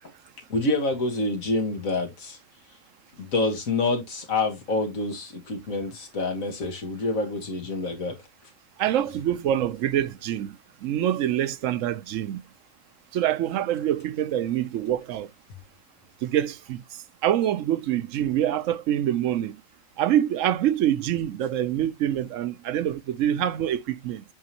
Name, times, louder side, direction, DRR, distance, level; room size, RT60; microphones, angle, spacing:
voice 1, 0.5-2.4 3.2-8.2, left 2 dB, 90° left, 2.1 m, -27 dB
voice 2, 8.8-10.6 10.8-12.4 13.1-15.3 16.2-16.8 17.2-19.6 20.0-24.2, right 11 dB, 70° right, 1.0 m, -25 dB
9.6 x 3.6 x 2.8 m
omnidirectional pair, 1.4 m